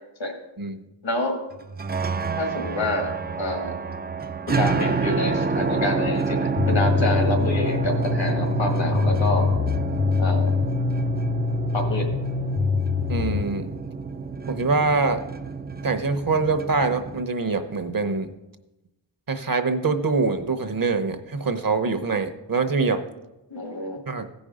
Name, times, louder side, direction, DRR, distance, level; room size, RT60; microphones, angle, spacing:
voice 1, 1.0-1.4 2.4-3.8 4.5-9.5 10.2-10.5 11.7-12.1 23.5-24.0, left 1 dB, 85° left, 3 dB, 1.7 m, -27 dB
sound 1, 1.6-17.2, right 4 dB, 25° right, 0.3 m, -28 dB
sound 2, 6.6-13.4, left 5 dB, 55° left, 0.7 m, -24 dB
voice 2, 13.1-13.7 14.5-15.2 15.8-18.3 19.3-23.0 24.1-24.3, right 4 dB, 50° right, 8 dB, 0.9 m, -24 dB
16.0 x 5.4 x 5.0 m, 0.99 s
wide cardioid pair, 60°, 44 cm